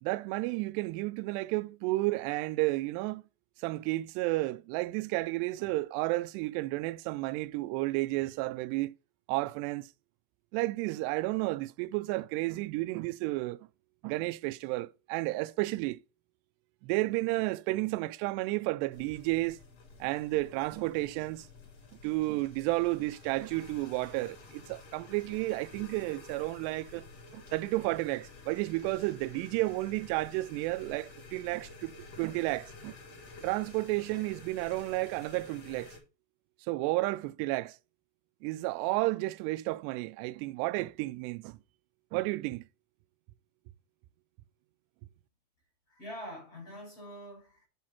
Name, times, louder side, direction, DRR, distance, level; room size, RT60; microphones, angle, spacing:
voice 1, 0.0-3.2 3.6-8.9 9.3-9.9 10.5-13.6 14.0-16.0 16.8-19.6 20.0-21.5 22.0-27.0 27.3-31.9 32.2-33.0 33.4-35.9 36.7-37.8 38.4-41.6 42.1-42.6, right 20 dB, 85° right, 2.6 m, -32 dB
sound 1, 18.9-36.0, left 3 dB, 40° left, 3.2 m, -51 dB
voice 2, 45.9-47.7, equal, 20° left, 6.2 m, -45 dB
8.3 x 7.6 x 4.2 m
omnidirectional pair, 5.0 m